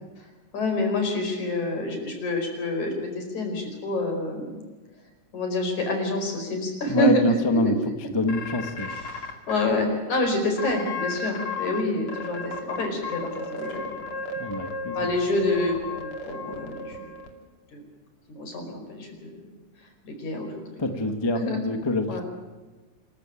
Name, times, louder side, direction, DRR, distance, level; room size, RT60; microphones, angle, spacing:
voice 1, 0.5-4.6 5.3-7.2 7.5-7.8 8.9-14.2 15.0-17.1 17.7-17.8 18.3-19.5 20.0-20.5 21.3-21.6 22.1-22.2, left 2 dB, 75° left, 4 dB, 6.3 m, -28 dB
voice 2, 6.9-7.7 8.1-8.9 14.3-15.1 20.8-22.2, left 2 dB, 15° left, 7 dB, 1.0 m, -25 dB
sound 1, 8.3-9.7 10.1-10.2 10.6-11.8 12.1-17.3, left 3 dB, 45° left, 3.4 m, -34 dB
26.0 x 15.0 x 9.1 m, 1.3 s
omnidirectional pair, 3.4 m